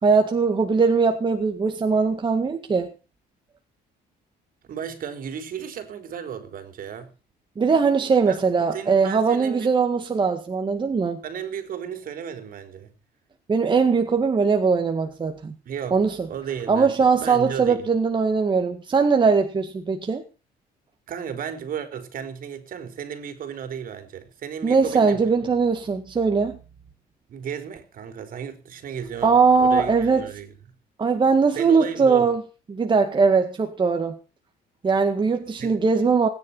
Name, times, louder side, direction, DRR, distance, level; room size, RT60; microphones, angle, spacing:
voice 1, 0.0-2.9 7.6-11.2 13.5-15.5 15.9-16.3 16.7-20.2 24.6-26.6 29.2-30.3 31.0-32.4 32.7-34.2 34.8-36.3, right 5 dB, 30° right, 2.0 m, -20 dB
voice 2, 4.7-7.1 8.3-9.7 11.2-12.9 15.7-16.0 16.3-17.9 21.1-25.4 27.3-30.5 31.5-32.3 35.6-35.8, right 8 dB, 55° right, 4.2 m, -34 dB
20.5 x 10.5 x 5.7 m
cardioid pair, 110°, 17 cm